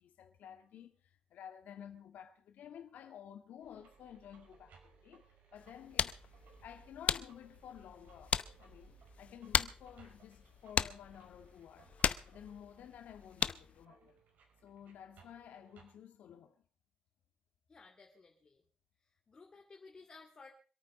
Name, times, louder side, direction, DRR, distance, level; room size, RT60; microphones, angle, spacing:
voice 1, 0.0-5.3 5.5-6.1 6.5-11.9 12.3-14.2 14.6-16.6, left 9 dB, 90° left, 1.9 m, -53 dB
sound 1, 3.6-15.9, right 6 dB, 90° right, 5.4 m, -64 dB
sound 2, 5.6-13.8, left 7 dB, 50° left, 0.8 m, -38 dB
voice 2, 17.7-18.6 19.3-20.5, left 4 dB, 30° left, 2.6 m, -56 dB
26.0 x 9.1 x 5.4 m
wide cardioid pair, 150°, 3 cm